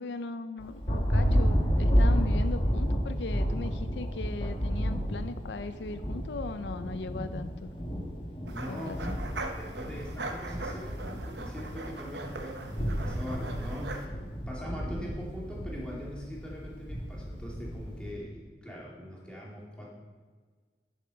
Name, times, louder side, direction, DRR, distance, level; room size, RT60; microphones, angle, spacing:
voice 1, 0.0-7.7 8.7-9.2, left 3 dB, 85° left, 11 dB, 0.5 m, -38 dB
Thunder, 0.6-18.1, equal, 30° left, 1.3 m, -31 dB
voice 2, 8.5-11.0 11.3-14.1 14.5-19.9, equal, 5° left, -4 dB, 2.4 m, -42 dB
sound 1, 8.5-14.1, right 2 dB, 85° right, 1.0 m, -41 dB
10.5 x 7.3 x 5.6 m, 1.5 s
head